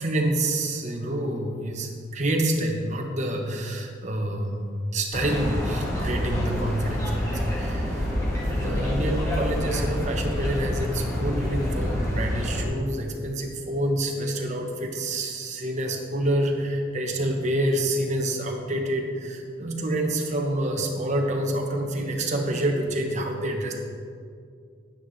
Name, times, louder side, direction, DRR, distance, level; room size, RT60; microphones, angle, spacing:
voice 1, 0.0-8.1 8.4-23.7, right 1 dB, 40° right, 1 dB, 1.2 m, -27 dB
sound 1, 5.1-12.6, left 1 dB, 15° left, 1.8 m, -27 dB
10.0 x 9.4 x 4.2 m, 2.3 s
head